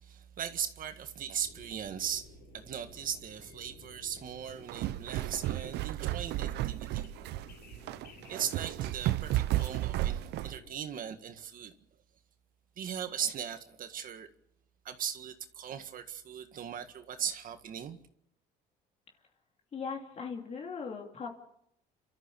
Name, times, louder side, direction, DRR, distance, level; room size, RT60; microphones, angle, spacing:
voice 1, 0.0-2.3 2.5-7.1 8.3-11.7 12.8-14.3 14.9-18.0, right 8 dB, 55° right, 1.8 m, -38 dB
sound 1, 1.4-10.7, left 5 dB, 75° left, 6.2 m, -55 dB
sound 2, 4.5-10.6, right 15 dB, 80° right, 0.9 m, -33 dB
voice 2, 19.7-21.3, left 5 dB, 40° left, 3.0 m, -39 dB
29.0 x 13.5 x 7.0 m
cardioid pair, 110°, 17 cm